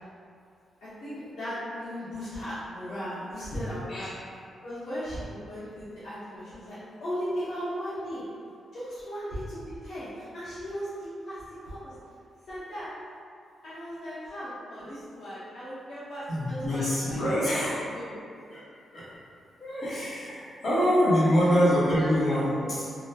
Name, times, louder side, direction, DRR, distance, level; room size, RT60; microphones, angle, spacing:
voice 1, 0.8-4.1 4.6-8.2 8.7-11.9 12.5-12.9 13.6-17.6 17.9-18.5 21.4-22.4, equal, 75° left, -14 dB, 1.0 m, -37 dB
voice 2, 16.3-17.8 18.5-18.6 18.9-19.0 19.6-22.8, equal, 45° left, -13 dB, 1.5 m, -25 dB
3.0 x 2.5 x 2.3 m, 2.4 s
wide cardioid pair, 170°, 0 cm